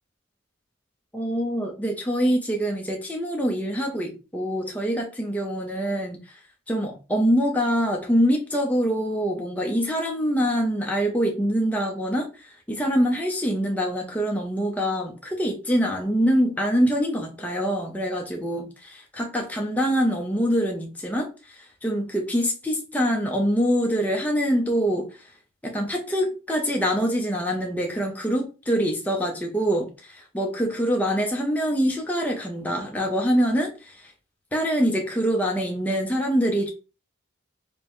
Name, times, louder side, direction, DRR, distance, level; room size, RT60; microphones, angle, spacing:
voice 1, 1.1-6.4 6.7-25.1 25.6-34.1 34.5-36.7, equal, 10° left, 0.6 m, -25 dB
5.1 x 2.1 x 3.0 m
head